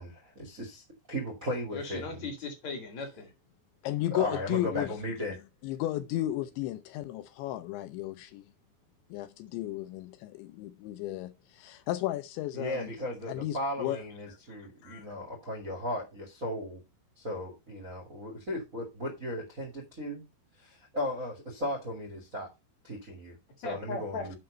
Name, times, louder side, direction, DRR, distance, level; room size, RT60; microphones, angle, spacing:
voice 1, 0.0-2.3 4.1-5.4 12.5-16.8 17.2-20.2 20.6-22.5 22.8-24.4, equal, 35° right, 1.3 m, -36 dB
voice 2, 1.7-3.3 23.6-24.4, left 3 dB, 45° left, 2.6 m, -38 dB
voice 3, 3.8-5.0 5.6-8.4 9.1-12.9 13.3-14.0 14.3-14.4 14.8-15.1 24.3-24.4, left 14 dB, 80° left, 2.8 m, -34 dB
7.7 x 5.8 x 5.3 m
omnidirectional pair, 5.5 m